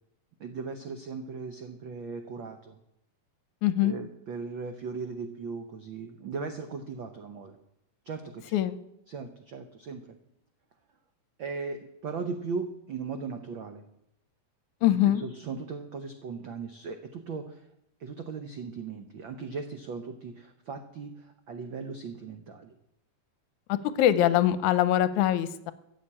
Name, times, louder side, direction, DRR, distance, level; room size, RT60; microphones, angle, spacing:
voice 1, 0.4-2.8 3.8-7.6 8.0-8.4 9.1-10.1 11.4-13.8 15.0-17.6 18.0-22.7, right 4 dB, 85° right, 7 dB, 1.0 m, -38 dB
voice 2, 3.6-3.9 8.5-8.8 14.8-15.2 24.0-25.7, left 12 dB, 85° left, 14 dB, 2.1 m, -23 dB
14.0 x 7.4 x 8.7 m, 0.80 s
omnidirectional pair, 3.5 m